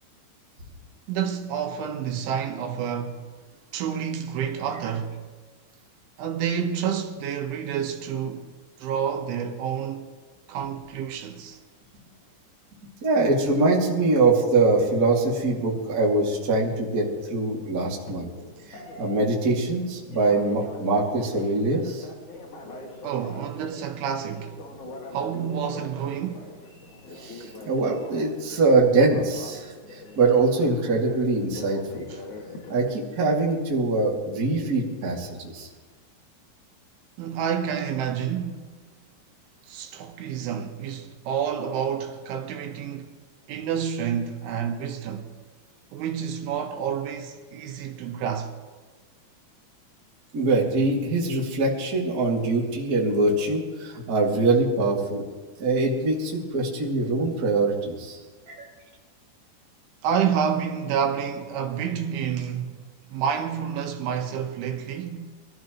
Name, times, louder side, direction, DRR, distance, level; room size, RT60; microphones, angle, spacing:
voice 1, 1.1-3.3 3.7-5.1 6.2-8.5 8.8-10.1 10.5-11.6 23.0-24.6 25.1-26.5 32.1-32.2 37.2-38.7 39.7-43.1 43.5-45.3 45.9-48.5 60.0-62.9 63.1-65.4, right 8 dB, 80° right, 3.6 m, -29 dB
voice 2, 13.0-18.3 18.7-22.0 27.2-32.1 32.7-35.7 50.3-55.2 55.6-58.2 58.5-58.7, right 3 dB, 30° right, 1.8 m, -23 dB
Telephone, 15.8-32.9, left 2 dB, 50° left, 3.2 m, -43 dB
24.0 x 14.5 x 3.1 m
omnidirectional pair, 5.4 m